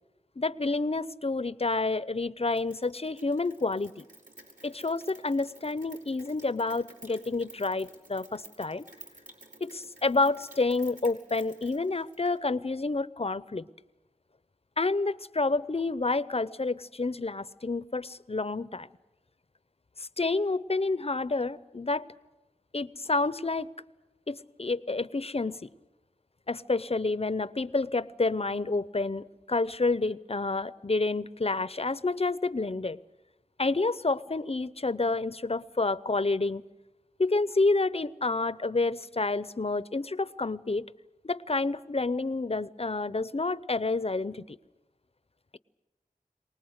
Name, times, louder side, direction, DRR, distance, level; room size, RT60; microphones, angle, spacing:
voice 1, 0.4-4.0 4.6-8.9 9.6-13.7 14.8-18.9 20.0-22.1 22.7-23.7 24.3-25.6 26.5-33.0 33.6-36.6 37.2-40.9 41.2-44.6, left 3 dB, 45° left, 17 dB, 0.7 m, -29 dB
Rain, 2.5-12.4, right 1 dB, 60° right, 4.3 m, -53 dB
24.0 x 19.5 x 8.0 m, 1.0 s
wide cardioid pair, 50°, 15 cm